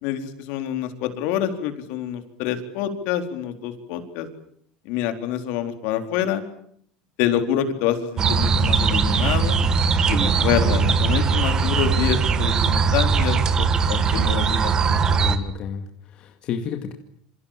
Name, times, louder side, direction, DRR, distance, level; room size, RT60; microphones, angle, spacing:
voice 1, 0.0-4.3 4.8-6.4 7.2-9.6 10.1-15.5, left 10 dB, 65° left, 7 dB, 4.3 m, -27 dB
sound 1, 8.2-15.4, right 5 dB, 25° right, 1.9 m, -20 dB
voice 2, 15.1-16.9, left 7 dB, 40° left, 5 dB, 2.3 m, -31 dB
27.5 x 27.0 x 7.6 m, 0.67 s
cardioid pair, 155°, 3 cm